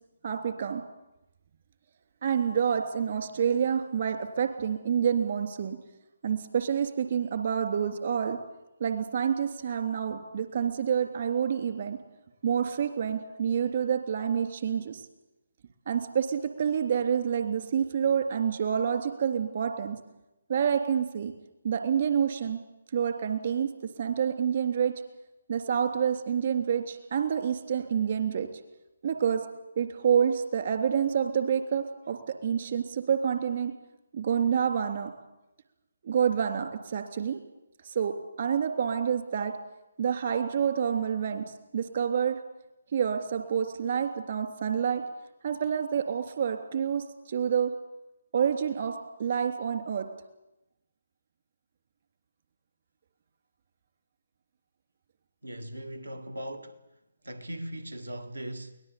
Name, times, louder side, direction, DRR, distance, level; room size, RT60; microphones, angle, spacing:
voice 1, 0.2-0.8 2.2-5.8 6.2-8.4 8.8-12.0 12.4-15.0 15.9-20.0 20.5-21.3 21.6-22.6 22.9-23.7 24.0-24.9 25.5-28.5 29.0-29.4 29.8-33.7 34.1-35.1 36.0-37.4 37.9-39.5 40.0-42.4 42.9-45.0 45.4-47.7 48.3-48.9 49.2-50.0, right 7 dB, 50° right, 3.2 m, -28 dB
voice 2, 55.4-56.8 57.2-58.7, right 1 dB, 90° right, 1.9 m, -39 dB
23.0 x 18.5 x 8.6 m
figure-of-eight pair, 145°, 0 cm